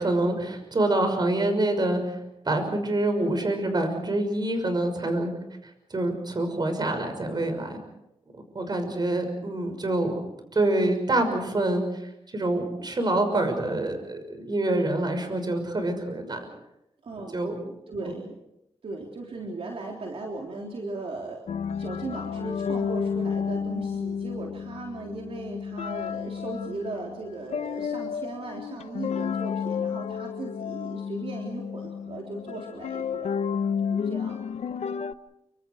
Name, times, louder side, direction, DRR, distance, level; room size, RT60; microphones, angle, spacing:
voice 1, 0.0-2.2 2.4-5.3 5.9-7.8 8.5-10.2 10.5-11.8 12.3-16.4 17.2-17.6 18.0-18.1, right 2 dB, 40° right, 6 dB, 6.1 m, -26 dB
voice 2, 17.0-17.4 17.6-18.4 18.8-33.3 33.8-34.4, right 3 dB, 65° right, 0 dB, 3.7 m, -37 dB
sound 1, 21.5-35.1, left 7 dB, 85° left, 0.8 m, -31 dB
28.5 x 25.0 x 4.8 m, 0.84 s
wide cardioid pair, 90°, 11 cm